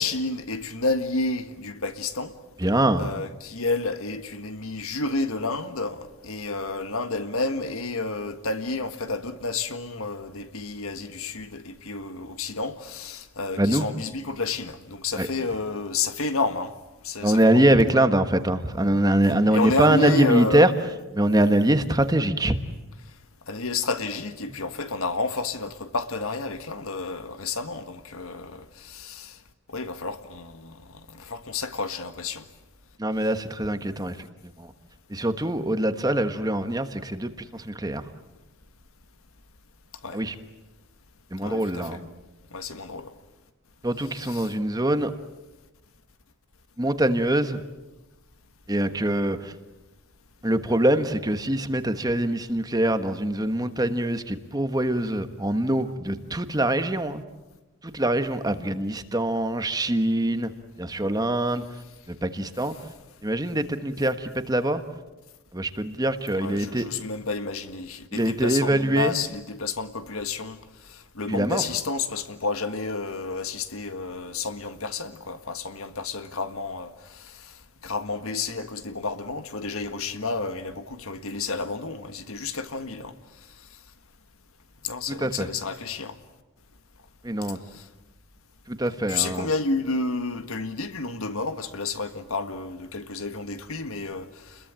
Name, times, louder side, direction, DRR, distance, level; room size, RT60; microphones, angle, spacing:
voice 1, 0.0-2.3 3.0-16.7 17.0-17.9 19.5-20.7 23.5-29.4 29.7-32.5 40.0-40.2 41.4-41.9 42.5-43.1 44.2-44.5 66.3-83.2 84.8-86.2 87.7-87.9 89.1-94.7, left 3 dB, 70° left, 1.7 m, -30 dB
voice 2, 2.6-3.1 13.6-13.9 15.2-15.3 17.2-20.7 21.1-22.6 33.0-34.3 34.6-34.7 35.1-38.1 40.1-40.3 41.3-42.0 43.8-45.1 46.8-47.6 48.7-49.5 50.4-57.2 57.8-60.5 60.8-61.6 62.1-62.8 63.2-64.8 65.5-66.9 68.1-69.2 71.3-71.6 85.2-85.5 87.2-87.6 88.7-89.5, right 1 dB, 15° right, 1.3 m, -23 dB
30.0 x 22.0 x 8.9 m
head